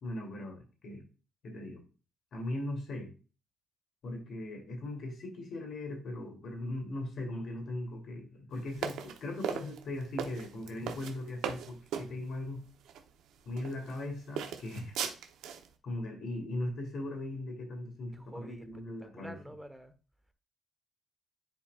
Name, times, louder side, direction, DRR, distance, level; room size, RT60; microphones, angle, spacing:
voice 1, 0.0-1.0 1.4-1.8 2.3-3.1 4.0-12.6 13.5-15.0 15.8-19.4, left 1 dB, 65° left, 3 dB, 2.5 m, -39 dB
sound 1, 8.8-12.1 12.8-13.0 13.6-14.0 14.4-15.7, right 8 dB, 85° right, 0.8 m, -37 dB
voice 2, 18.1-18.7 19.0-19.9, equal, 5° right, 9 dB, 1.0 m, -47 dB
9.9 x 4.7 x 2.3 m, 0.35 s
cardioid pair, 90°, 0 cm